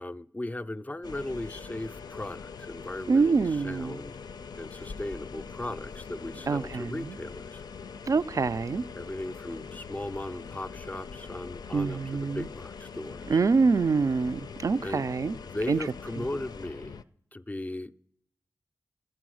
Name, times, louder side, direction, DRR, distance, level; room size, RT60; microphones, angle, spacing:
voice 1, 0.0-4.2 4.6-7.6 8.9-13.4 14.8-15.1 15.5-17.0 17.3-18.0, left 1 dB, 25° left, 0.4 m, -37 dB
sound 1, 1.0-17.0, left 5 dB, 85° left, 0.4 m, -43 dB
voice 2, 3.1-4.0 6.5-7.2 8.1-8.8 11.7-12.5 13.3-15.4 15.7-15.8 16.2-16.3, right 4 dB, 55° right, 0.3 m, -25 dB
11.5 x 7.7 x 6.2 m
cardioid pair, 50°, 7 cm